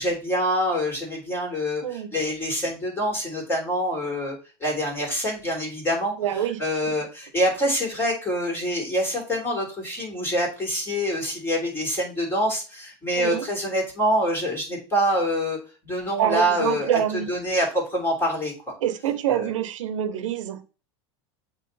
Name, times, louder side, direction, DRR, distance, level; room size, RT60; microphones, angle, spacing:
voice 1, 0.0-6.1 6.6-15.6 15.8-17.0 17.3-18.5 19.3-19.5, equal, 15° left, 0 dB, 3.1 m, -25 dB
voice 2, 1.8-2.1 6.2-6.6 13.2-13.5 16.2-17.3 18.8-20.6, right 11 dB, 85° right, 11 dB, 0.8 m, -26 dB
7.7 x 3.0 x 4.0 m, 0.33 s
supercardioid pair, 125°, 16 cm